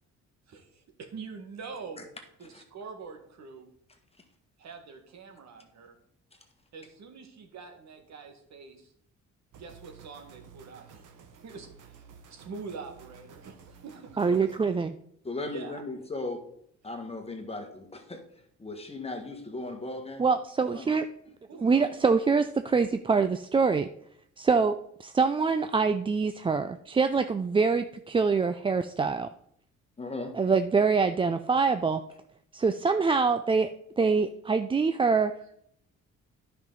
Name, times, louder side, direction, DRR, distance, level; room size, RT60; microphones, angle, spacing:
voice 1, 0.5-2.1 2.4-3.7 4.6-6.0 6.7-8.9 9.6-14.6 15.4-15.8 21.5-22.0, right 5 dB, 65° right, 4 dB, 1.7 m, -45 dB
sound 1, 9.5-14.6, right 6 dB, 80° right, 1.1 m, -53 dB
voice 2, 14.2-15.0 20.2-21.1 21.6-23.9 24.4-29.3 30.3-32.0 32.5-33.7 34.0-35.3, right 4 dB, 20° right, 9 dB, 0.3 m, -25 dB
voice 3, 15.2-16.4 16.8-18.2 18.6-20.3 20.7-20.9 30.0-30.3, left 2 dB, 20° left, 4 dB, 1.5 m, -37 dB
10.0 x 5.8 x 3.9 m, 0.69 s
cardioid pair, 90°, 30 cm